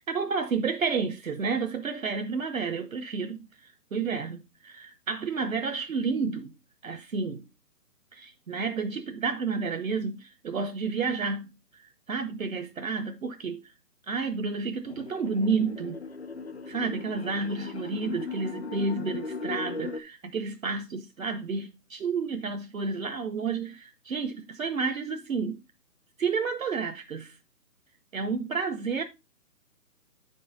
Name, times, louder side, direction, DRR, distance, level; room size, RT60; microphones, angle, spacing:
voice 1, 0.1-6.5 6.8-7.4 8.1-11.5 11.8-13.6 14.1-16.0 16.7-25.6 26.2-27.4 28.1-29.0, right 4 dB, 60° right, 0.9 m, -31 dB
sound 1, 14.8-20.0, left 5 dB, 45° left, 0.6 m, -38 dB
8.2 x 5.4 x 3.8 m
hypercardioid pair, 175°, 46 cm